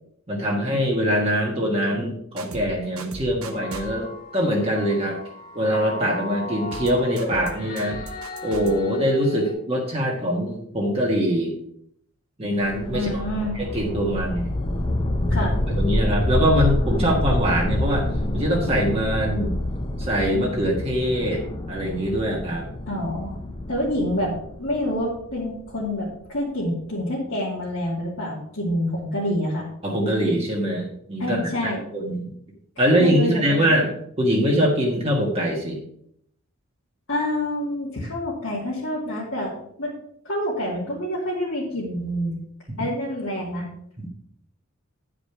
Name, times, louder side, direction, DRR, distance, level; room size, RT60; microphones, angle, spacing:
voice 1, 0.3-5.2 5.5-8.0 8.4-11.5 12.4-13.2 13.5-14.5 15.7-18.1 18.3-19.6 20.0-21.4 21.7-22.6 29.8-32.3 32.8-33.9 34.2-35.8, equal, 30° right, -2 dB, 1.5 m, -23 dB
sound 1, 2.4-2.7 3.0-3.9 6.7-6.9 7.2-7.5 7.8-8.7, right 3 dB, 85° right, 1.1 m, -37 dB
sound 2, 3.5-9.5, left 2 dB, 40° left, 1.3 m, -36 dB
sound 3, 12.6-25.7, left 1 dB, 25° left, 0.8 m, -27 dB
voice 2, 12.9-13.5 15.3-15.6 22.9-23.4 23.7-24.3 24.6-29.7 31.2-31.8 33.0-33.8 37.1-39.9 40.2-42.4 42.8-43.7, left 1 dB, 65° left, -8 dB, 2.4 m, -27 dB
10.0 x 5.1 x 5.7 m, 0.70 s
head